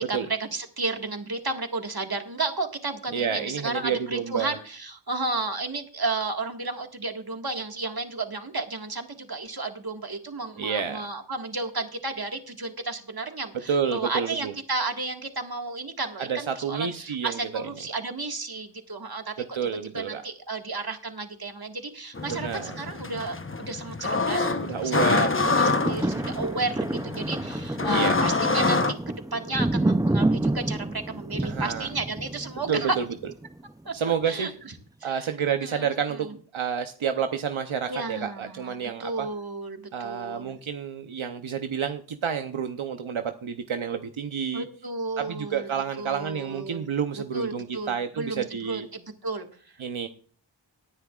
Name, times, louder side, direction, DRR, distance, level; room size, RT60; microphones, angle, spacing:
voice 1, 0.1-19.3 19.9-33.0 33.8-34.7 35.0-35.3 35.6-36.3 37.9-40.6 44.5-45.7 46.0-46.9 47.1-49.8, right 3 dB, 50° right, 4 dB, 1.8 m, -33 dB
voice 2, 3.1-4.5 10.6-11.0 13.7-14.5 16.3-17.6 19.5-20.2 22.3-22.8 24.7-25.3 25.6-26.3 27.9-28.2 31.4-31.9 32.7-33.0 33.9-34.5 35.0-39.3 39.9-44.6 45.2-48.9 49.8-50.1, right 7 dB, 85° right, 7 dB, 0.8 m, -29 dB
sound 1, 22.1-28.9, left 3 dB, 25° left, 0.9 m, -26 dB
sound 2, 25.4-33.7 34.2-34.3, right 2 dB, 10° right, 0.5 m, -29 dB
19.0 x 9.8 x 2.4 m, 0.43 s
wide cardioid pair, 50°, 47 cm